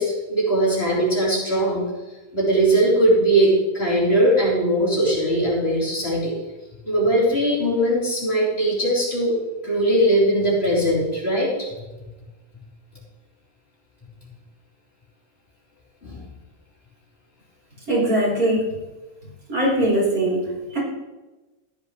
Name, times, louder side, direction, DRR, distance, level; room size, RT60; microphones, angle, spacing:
voice 1, 0.0-1.8 2.3-6.3 6.9-9.4 9.6-11.7 16.0-16.2, right 1 dB, 40° left, -7 dB, 4.7 m, -20 dB
voice 2, 17.9-18.6 19.5-20.8, right 1 dB, 70° right, -6 dB, 5.1 m, -21 dB
14.0 x 11.0 x 3.3 m, 1.1 s
omnidirectional pair, 1.5 m